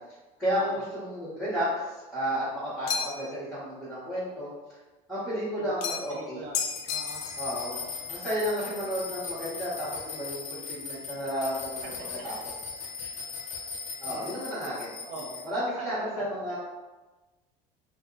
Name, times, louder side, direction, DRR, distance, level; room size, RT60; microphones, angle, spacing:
voice 1, 0.4-4.5 5.1-6.4 7.4-11.9 12.2-12.4 14.0-15.0 15.4-16.6, equal, 5° left, -14 dB, 1.5 m, -32 dB
sound 1, 2.9-3.4 5.8-6.2 6.5-7.5, left 7 dB, 65° left, 0.5 m, -32 dB
voice 2, 6.1-6.6 6.9-7.3 13.0-13.1 14.1-14.3 15.0-15.4 15.8-16.1 16.5-16.6, right 2 dB, 80° right, 0 dB, 0.8 m, -42 dB
sound 2, 6.7-15.4, left 5 dB, 45° left, 0.9 m, -39 dB
2.7 x 2.1 x 4.0 m, 1.2 s
supercardioid pair, 105°, 17 cm